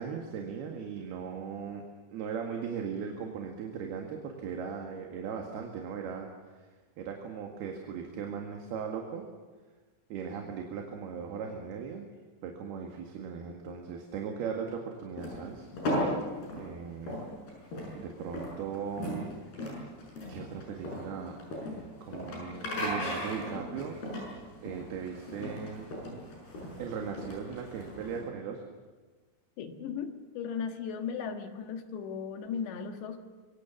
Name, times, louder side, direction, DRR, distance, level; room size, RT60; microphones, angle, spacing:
voice 1, 0.0-1.8 2.1-6.7 7.0-9.3 10.1-12.1 12.4-15.7 16.6-17.2 17.9-19.3 20.3-21.4 22.0-24.0 24.6-26.0 26.8-28.6, right 6 dB, 65° right, 2 dB, 3.7 m, -38 dB
Footsteps from sand to walkway, 15.2-28.2, left 1 dB, 60° left, 8.7 m, -37 dB
voice 2, 29.6-33.2, left 6 dB, 75° left, 6 dB, 3.7 m, -36 dB
26.5 x 23.5 x 7.3 m, 1.3 s
omnidirectional pair, 5.2 m